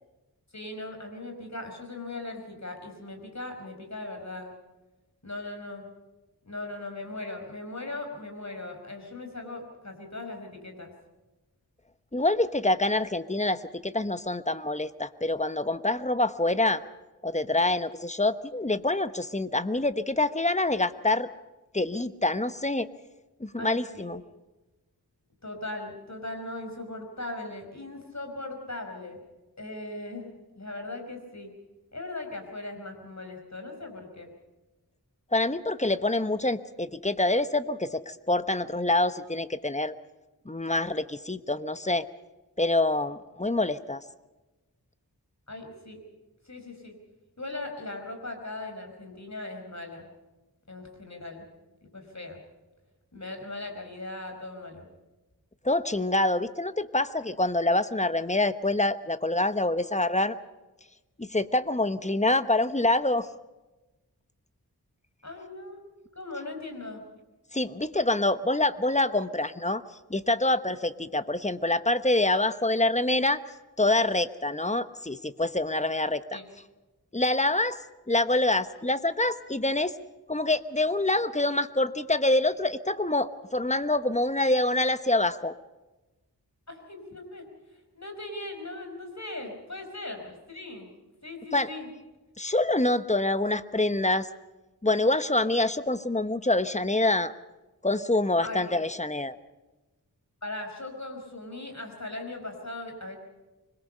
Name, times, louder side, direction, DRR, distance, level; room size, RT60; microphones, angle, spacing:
voice 1, 0.5-4.5 5.2-5.9 6.5-10.9 23.6-24.1 25.4-29.2 29.6-30.3 30.5-31.5 31.9-34.3 45.5-46.0 46.4-46.9 47.4-50.1 50.7-51.5 51.8-52.4 53.1-54.9 65.2-65.9 66.1-67.0 76.3-76.4 86.7-87.4 87.9-90.9 91.2-91.9 98.4-98.7 100.4-103.2, left 2 dB, 45° left, 4 dB, 5.1 m, -39 dB
voice 2, 12.1-16.8 17.2-21.3 21.7-22.9 23.4-24.2 35.3-39.9 40.4-42.1 42.6-44.0 55.6-60.4 61.2-63.3 67.5-69.8 70.1-73.4 73.8-76.4 77.1-77.8 78.1-79.9 80.3-85.5 91.5-91.7 92.4-94.3 94.8-97.3 97.8-99.4, left 2 dB, 20° left, 12 dB, 1.0 m, -26 dB
25.5 x 21.5 x 5.5 m, 1.1 s
wide cardioid pair, 40°, 38 cm